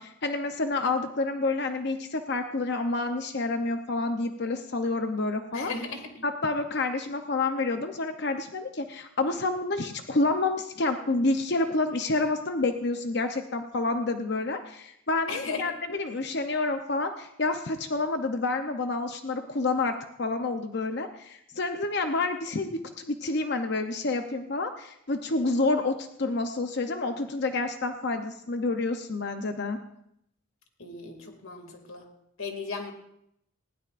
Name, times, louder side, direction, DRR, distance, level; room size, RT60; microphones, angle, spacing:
voice 1, 0.0-5.7 6.2-29.8, left 3 dB, 50° left, 6 dB, 0.8 m, -29 dB
voice 2, 5.5-6.1 15.3-15.6 30.8-32.1 32.4-32.9, left 4 dB, 75° left, 4 dB, 2.5 m, -36 dB
20.0 x 16.0 x 2.6 m, 0.76 s
head